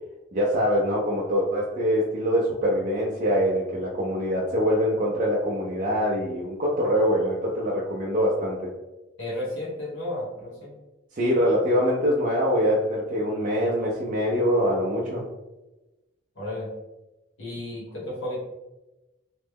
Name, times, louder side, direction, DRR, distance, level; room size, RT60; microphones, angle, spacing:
voice 1, 0.3-8.7 11.1-15.2, equal, 40° right, -4 dB, 0.4 m, -24 dB
voice 2, 9.2-10.7 16.3-16.7 17.4-18.4, left 1 dB, 75° left, -6 dB, 1.1 m, -33 dB
3.1 x 2.1 x 3.4 m, 1.0 s
head